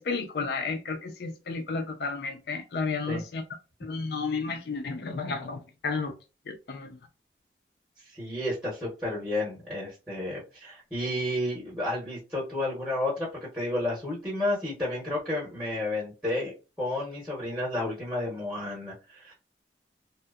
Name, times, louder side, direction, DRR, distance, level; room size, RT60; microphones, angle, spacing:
voice 1, 0.0-3.4 3.8-6.1 6.5-7.0, left 4 dB, 60° left, 0.4 m, -32 dB
voice 2, 8.1-13.3 13.5-19.3, left 1 dB, 5° right, 0.7 m, -31 dB
2.7 x 2.0 x 2.3 m
head